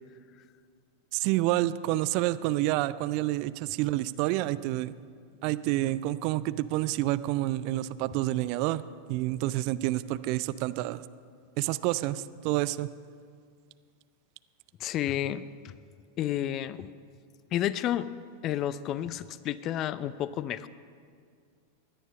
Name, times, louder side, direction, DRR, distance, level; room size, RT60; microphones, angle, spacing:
voice 1, 1.1-4.9 5.4-8.8 9.1-11.0 11.6-12.9, right 16 dB, 45° right, 16 dB, 0.4 m, -28 dB
voice 2, 14.8-15.7 16.2-16.9 17.5-18.1 18.4-20.7, left 11 dB, 35° left, 16 dB, 0.5 m, -31 dB
16.5 x 11.0 x 5.5 m, 2.2 s
figure-of-eight pair, 90°, 0 cm